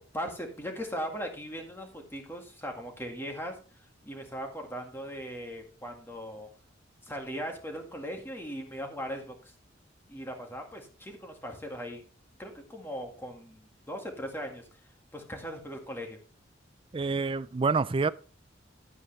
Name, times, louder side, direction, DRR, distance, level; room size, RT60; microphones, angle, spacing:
voice 1, 0.0-3.5 4.0-6.5 7.0-9.5 10.1-12.0 12.4-14.6 15.1-16.2, equal, 10° left, 1.9 m, -39 dB
voice 2, 16.9-18.1, right 4 dB, 30° right, 0.4 m, -27 dB
11.0 x 9.0 x 3.3 m
head